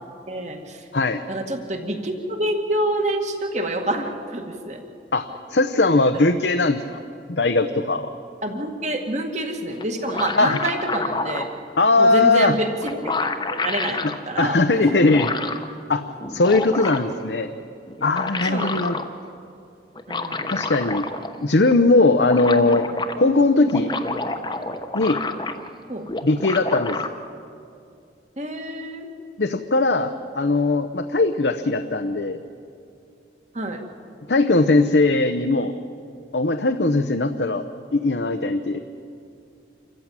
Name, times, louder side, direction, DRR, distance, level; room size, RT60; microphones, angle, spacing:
voice 1, 0.3-0.8 1.3-4.8 5.7-6.3 8.4-11.5 12.0-15.1 16.7-16.8 18.4-18.8 20.1-20.6 25.9-26.1 28.4-29.1 33.5-33.8, right 1 dB, 40° right, 4 dB, 2.1 m, -27 dB
voice 2, 5.1-7.0 7.3-8.1 10.4-10.6 11.8-12.5 14.0-14.1 14.4-15.3 15.9-17.5 18.0-19.0 20.5-21.1 21.4-22.9 23.2-23.9 24.9-25.2 26.2-27.1 29.4-32.4 34.3-35.7 36.3-37.7 37.9-38.8, left 3 dB, 65° left, 7 dB, 0.8 m, -19 dB
sound 1, 9.8-11.5 12.5-12.6 12.8-14.2 14.9-15.7 16.2-17.2 17.9-19.1 20.0-21.4 21.7-21.8 22.0-23.2 23.6-25.8 26.1-27.1, left 3 dB, 25° left, 1.0 m, -29 dB
27.0 x 14.5 x 8.9 m, 2.6 s
head